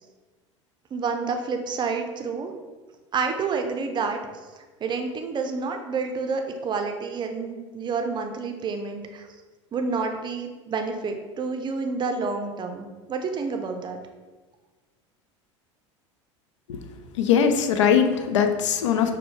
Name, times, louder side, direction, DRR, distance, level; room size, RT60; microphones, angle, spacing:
voice 1, 0.9-2.5 3.1-4.2 4.8-9.2 9.7-14.0, right 4 dB, 30° right, 5 dB, 0.5 m, -29 dB
voice 2, 17.2-19.2, left 7 dB, 75° left, 7 dB, 0.4 m, -21 dB
5.9 x 2.1 x 3.1 m, 1.3 s
hypercardioid pair, 80°, 16 cm